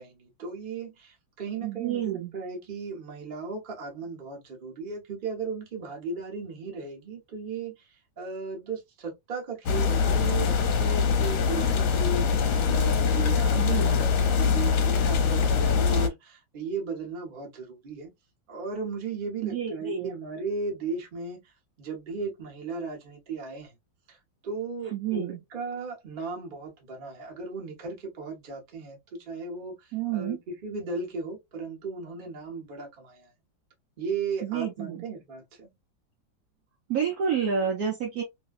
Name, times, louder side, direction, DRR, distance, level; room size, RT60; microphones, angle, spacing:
voice 1, 0.0-12.4 12.7-18.1 18.5-21.4 21.8-23.7 24.1-24.2 24.4-33.3 34.0-35.7, right 4 dB, 35° right, 0.9 m, -36 dB
voice 2, 1.6-2.3 13.6-14.0 19.4-20.1 24.9-25.4 29.9-30.4 34.4-35.0 36.9-38.2, right 8 dB, 60° right, 1.1 m, -29 dB
sound 1, 9.7-16.1, left 6 dB, 65° left, 1.1 m, -23 dB
3.0 x 2.7 x 2.3 m
omnidirectional pair, 2.1 m